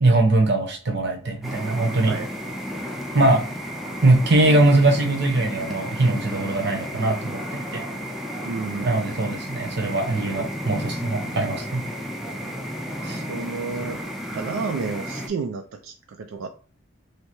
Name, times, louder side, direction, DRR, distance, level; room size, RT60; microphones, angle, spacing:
voice 1, 0.0-2.2 3.1-3.4 4.0-7.8 8.8-11.9 13.0-13.2, right 2 dB, 55° right, 3 dB, 0.8 m, -21 dB
sound 1, 1.4-15.3, equal, ahead, 0.4 m, -33 dB
voice 2, 8.5-9.3 13.2-14.0 14.3-16.5, right 5 dB, 85° right, 5 dB, 0.4 m, -31 dB
3.2 x 2.7 x 2.9 m, 0.38 s
head